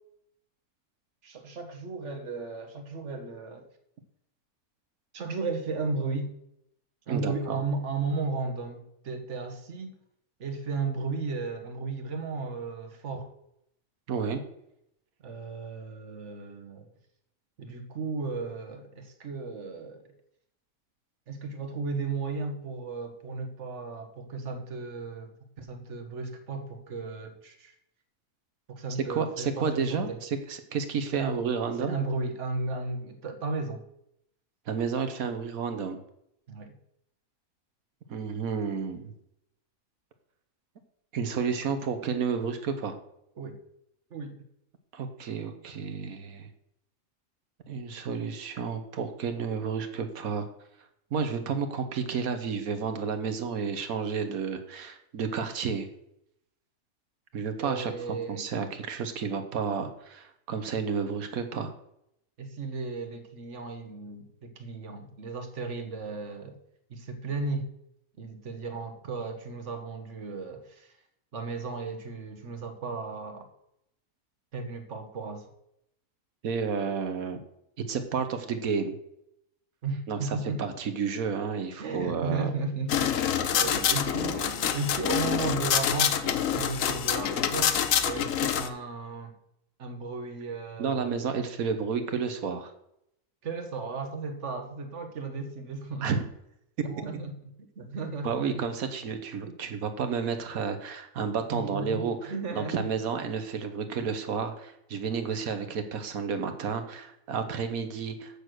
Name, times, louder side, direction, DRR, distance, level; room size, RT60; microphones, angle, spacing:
voice 1, 1.2-3.7 5.1-6.3 7.1-9.9 10.4-13.3 15.2-16.9 17.6-20.1 21.3-27.7 28.7-30.2 31.1-31.4 31.8-33.8 36.5-36.7 43.4-43.6 44.1-44.3 57.6-58.5 62.4-66.6 66.9-67.7 68.2-70.9 71.3-73.5 74.5-75.5 79.8-80.6 81.8-83.1 83.5-89.4 89.8-91.5 93.4-96.2 96.8-98.7 101.5-102.9, right 4 dB, 55° right, 6 dB, 1.5 m, -35 dB
voice 2, 7.1-7.6 14.1-14.4 29.1-32.0 34.7-36.0 38.1-39.1 41.1-43.0 44.9-46.5 47.7-50.5 51.1-55.9 57.3-57.9 58.3-61.7 76.4-77.4 77.8-79.0 80.1-82.5 83.9-84.5 90.8-92.7 96.0-96.2 96.8-96.9 98.2-108.4, right 6 dB, 75° right, 8 dB, 1.4 m, -31 dB
sound 1, 82.9-88.7, left 9 dB, 65° left, 1.1 m, -26 dB
8.3 x 6.7 x 6.3 m, 0.77 s
omnidirectional pair, 1.5 m